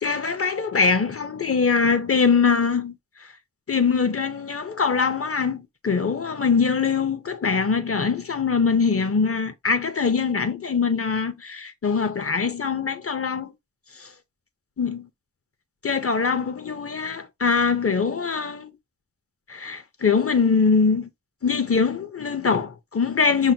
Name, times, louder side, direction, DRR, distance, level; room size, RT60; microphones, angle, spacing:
voice 1, 0.0-2.9 3.7-13.5 14.0-14.1 14.8-15.1 15.8-18.7 19.5-21.1 21.4-23.5, left 5 dB, 40° left, 0.7 m, -23 dB
5.6 x 2.2 x 2.7 m
wide cardioid pair, 75°, 34 cm